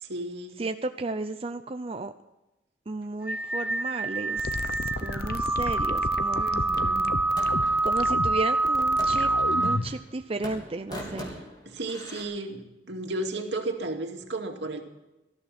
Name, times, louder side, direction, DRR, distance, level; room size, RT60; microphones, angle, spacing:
voice 1, 0.0-0.6 6.3-7.1 11.7-14.8, right 2 dB, 75° right, 3 dB, 2.4 m, -34 dB
voice 2, 0.6-2.1 2.9-4.6 5.0-6.5 7.8-9.3 9.6-11.4, right 3 dB, 35° right, 8 dB, 0.6 m, -33 dB
sound 1, 3.3-9.8, right 2 dB, 5° right, 0.9 m, -26 dB
sound 2, 4.4-10.0, left 2 dB, 60° left, 0.9 m, -33 dB
sound 3, 6.8-7.8 8.8-10.1 10.4-12.2, equal, 25° left, 3.7 m, -41 dB
19.0 x 14.0 x 4.3 m, 0.99 s
head